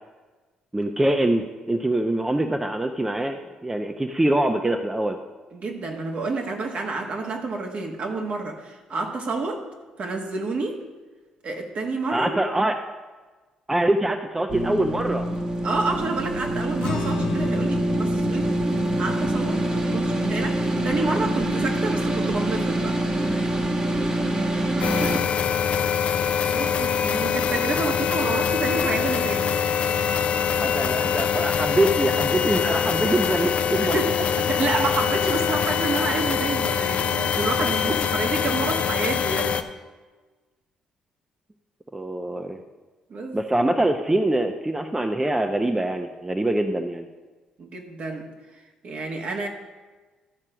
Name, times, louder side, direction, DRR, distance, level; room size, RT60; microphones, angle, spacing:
voice 1, 0.7-5.2 12.1-12.8 13.7-15.3 30.6-34.0 41.9-42.6 43.3-47.1, right 1 dB, 15° right, 5 dB, 0.7 m, -24 dB
voice 2, 5.5-9.6 10.0-10.8 11.4-12.4 15.6-18.5 19.0-23.0 23.3-23.4 26.5-29.6 33.8-39.6 43.1-43.4 47.6-48.3 48.5-49.5, right 3 dB, 55° right, 2 dB, 1.5 m, -29 dB
sound 1, 14.5-25.2, right 1 dB, 40° right, 1.4 m, -25 dB
sound 2, 16.8-23.4, left 5 dB, 85° left, 0.9 m, -37 dB
sound 3, 24.8-39.6, left 7 dB, 55° left, 0.5 m, -24 dB
12.5 x 4.4 x 6.1 m, 1.3 s
hypercardioid pair, 55°, 3 cm